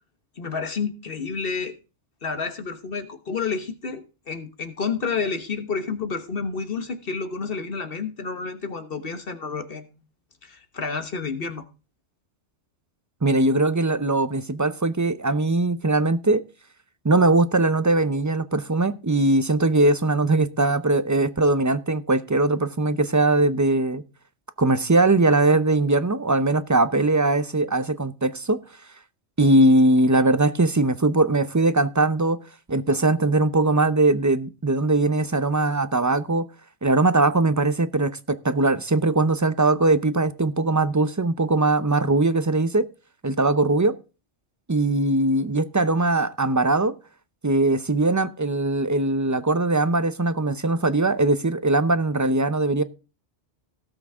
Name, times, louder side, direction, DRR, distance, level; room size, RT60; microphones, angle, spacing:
voice 1, 0.4-1.8 2.2-9.9 10.4-11.6, left 5 dB, 50° left, 1.4 m, -30 dB
voice 2, 13.2-16.4 17.0-24.0 24.6-28.6 29.4-32.4 32.7-36.5 36.8-42.9 43.2-44.0 44.7-46.9 47.4-52.8, right 2 dB, 20° right, 0.5 m, -21 dB
17.5 x 6.1 x 3.6 m
omnidirectional pair, 1.2 m